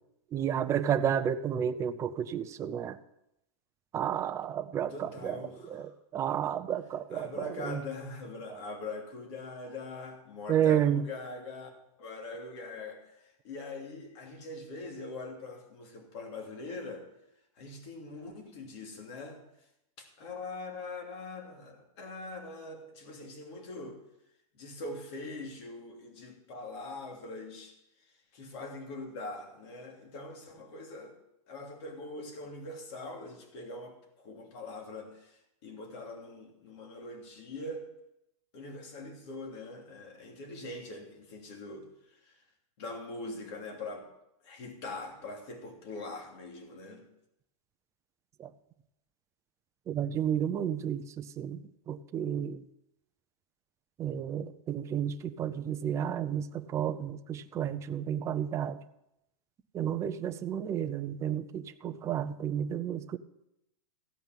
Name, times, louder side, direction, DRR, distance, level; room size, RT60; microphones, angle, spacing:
voice 1, 0.3-3.0 3.9-7.8 10.5-11.0 48.4-48.5 49.9-52.6 54.0-58.8 59.7-63.2, right 9 dB, 15° right, 8 dB, 0.5 m, -31 dB
voice 2, 4.9-5.9 7.1-11.7 12.0-17.1 17.6-19.4 20.0-24.0 24.5-27.7 28.3-31.1 31.5-37.8 38.5-42.4 42.8-44.1 44.4-47.0, left 2 dB, 50° left, 2 dB, 3.0 m, -42 dB
15.5 x 5.5 x 9.1 m, 0.83 s
supercardioid pair, 150°, 18 cm